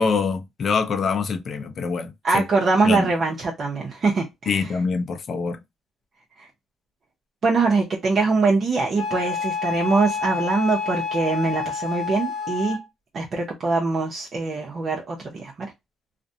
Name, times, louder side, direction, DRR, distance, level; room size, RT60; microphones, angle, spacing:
voice 1, 0.0-2.5 2.8-3.1 4.5-5.6, left 5 dB, 50° left, 0.5 m, -25 dB
voice 2, 2.2-4.6 7.4-12.8 13.1-15.7, right 3 dB, 50° right, 0.6 m, -23 dB
Wind instrument woodwind instrument, 9.0-12.8, left 5 dB, 90° left, 0.7 m, -28 dB
2.4 x 2.1 x 2.6 m
cardioid pair, 90°, 0 cm